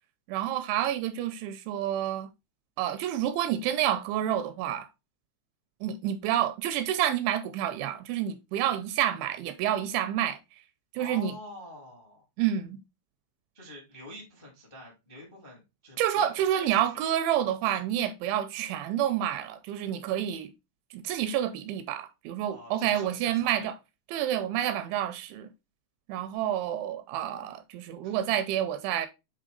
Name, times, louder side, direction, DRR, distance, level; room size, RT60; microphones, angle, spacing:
voice 1, 0.3-2.3 2.8-4.9 5.8-10.4 11.0-11.3 12.4-12.8 16.0-20.5 20.9-23.7 24.1-25.5 26.1-29.1, right 11 dB, 85° right, 2.7 m, -29 dB
voice 2, 11.0-12.2 13.5-17.0 17.6-17.7 22.5-23.7 28.0-28.2, equal, 35° left, 0.4 m, -46 dB
8.5 x 3.1 x 3.8 m
omnidirectional pair, 5.6 m